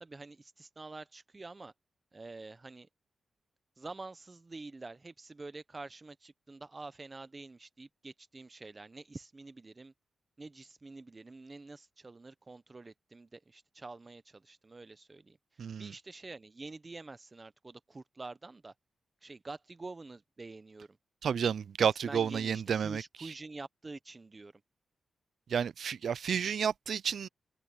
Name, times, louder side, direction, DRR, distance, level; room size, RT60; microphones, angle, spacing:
voice 1, 0.0-1.7 2.1-2.9 3.8-9.9 10.4-18.7 19.2-21.0 21.8-24.6, right 3 dB, 25° right, 0.9 m, -47 dB
voice 2, 15.6-15.9 21.2-23.0 25.5-27.3, right 7 dB, 70° right, 0.4 m, -31 dB
cardioid pair, 105°, 0 cm